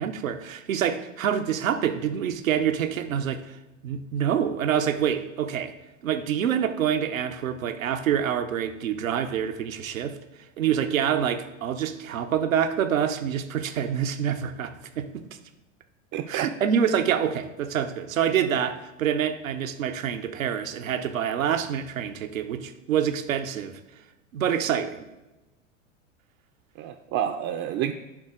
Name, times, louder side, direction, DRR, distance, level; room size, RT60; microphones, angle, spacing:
voice 1, 0.0-3.6 3.8-5.7 6.0-10.2 10.6-15.2 16.3-23.8 24.3-25.1, right 8 dB, 90° right, 8 dB, 0.7 m, -26 dB
voice 2, 16.1-16.5 26.8-27.9, right 10 dB, 40° right, 6 dB, 0.5 m, -29 dB
11.0 x 3.9 x 3.7 m, 1.0 s
hypercardioid pair, 90°, 39 cm